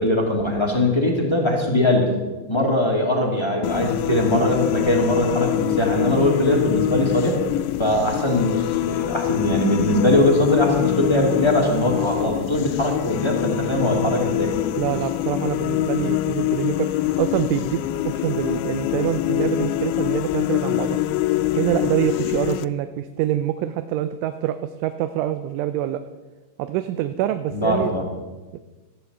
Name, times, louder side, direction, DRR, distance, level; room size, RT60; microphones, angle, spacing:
voice 1, 0.0-2.1 2.5-7.4 7.8-14.5 27.5-28.0, left 1 dB, 15° left, 0 dB, 1.0 m, -21 dB
sound 1, 3.6-22.7, left 14 dB, 85° left, 3.0 m, -25 dB
voice 2, 14.8-21.0 21.6-26.0 26.6-27.9 28.5-28.6, right 12 dB, 90° right, 10 dB, 3.2 m, -25 dB
15.5 x 11.5 x 8.1 m, 1.2 s
omnidirectional pair, 5.4 m